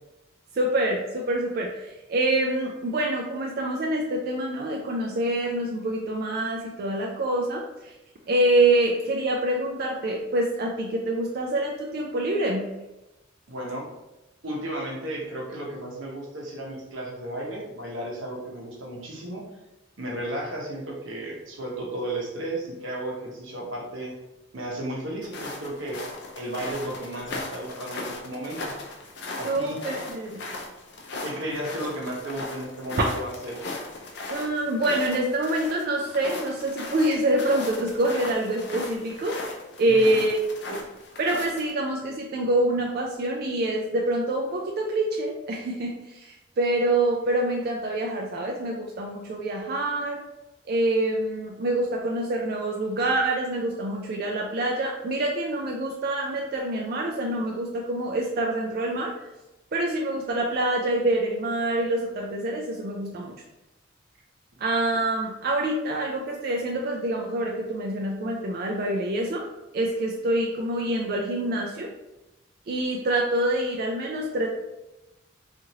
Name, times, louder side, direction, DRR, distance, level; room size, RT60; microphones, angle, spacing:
voice 1, 0.5-7.9 8.3-12.7 29.4-30.4 34.3-39.4 39.8-40.4 40.7-40.9 41.2-50.2 50.7-59.1 59.7-63.3 64.6-69.5 69.7-71.9 72.7-74.5, right 1 dB, 50° right, -1 dB, 0.3 m, -26 dB
voice 2, 13.5-13.9 14.4-19.4 20.0-24.2 24.5-26.0 26.4-28.7 29.4-29.8 31.2-33.6 39.9-40.2, right 1 dB, 85° right, -1 dB, 0.8 m, -34 dB
sound 1, 25.2-41.7, left 2 dB, 55° left, 0.5 m, -38 dB
3.0 x 2.5 x 2.7 m, 0.98 s
head